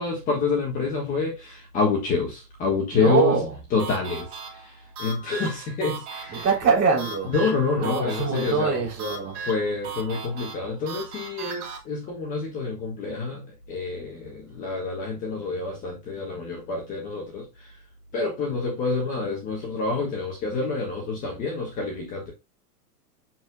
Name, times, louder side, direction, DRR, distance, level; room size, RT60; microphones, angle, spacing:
voice 1, 0.0-3.3 3.7-4.3 4.6-4.7 5.0-6.4 7.3-8.8 9.5-17.4 18.1-22.3, left 4 dB, 15° left, 1.4 m, -27 dB
voice 2, 2.9-3.6 6.3-7.4 7.7-9.4, right 5 dB, 20° right, 3.4 m, -24 dB
sound 1, 3.8-11.8, right 4 dB, 45° right, 3.6 m, -38 dB
7.5 x 6.7 x 2.2 m
supercardioid pair, 175°, 47 cm